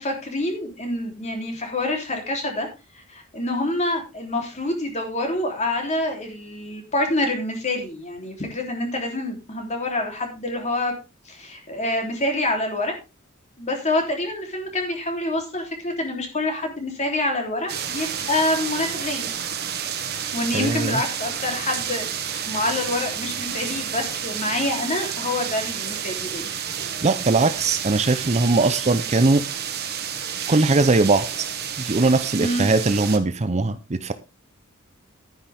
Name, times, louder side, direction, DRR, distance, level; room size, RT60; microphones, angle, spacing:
voice 1, 0.0-2.7 2.9-10.9 11.2-12.9 13.6-19.3 20.3-26.5 32.4-32.6, left 1 dB, 35° left, 2 dB, 3.3 m, -26 dB
sound 1, 17.7-33.2, right 8 dB, 50° right, 1.7 m, -30 dB
voice 2, 20.5-21.0 27.0-29.4 30.5-31.5 31.8-34.1, right 3 dB, 30° right, 11 dB, 0.7 m, -20 dB
11.5 x 9.9 x 3.5 m, 0.29 s
head